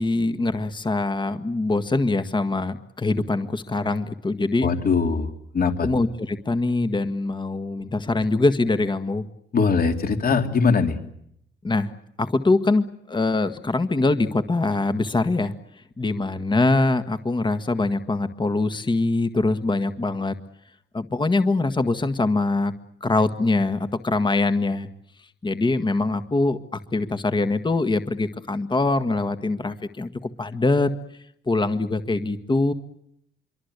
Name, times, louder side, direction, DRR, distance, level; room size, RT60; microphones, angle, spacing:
voice 1, 0.0-4.7 5.8-9.2 11.6-11.9 12.2-15.5 16.0-20.4 20.9-22.7 23.0-24.9 25.4-30.9 31.5-32.7, left 2 dB, 25° left, 9 dB, 1.7 m, -23 dB
voice 2, 4.6-5.9 9.5-11.0, left 5 dB, 45° left, 6 dB, 3.2 m, -21 dB
26.0 x 24.0 x 8.3 m, 0.73 s
cardioid pair, 90°, 20 cm